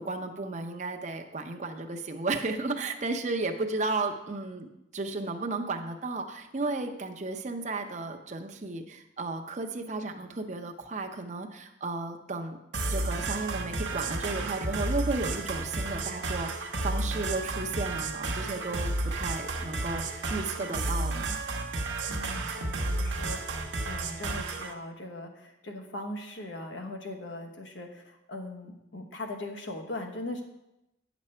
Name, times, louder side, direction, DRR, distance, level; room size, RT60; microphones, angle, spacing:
voice 1, 0.0-12.6 12.9-21.4, right 3 dB, 40° right, 5 dB, 0.7 m, -34 dB
sound 1, 12.7-24.7, right 2 dB, 75° right, 1.0 m, -32 dB
voice 2, 22.1-30.4, left 1 dB, 75° left, 3 dB, 1.1 m, -40 dB
9.7 x 6.1 x 4.4 m, 0.91 s
head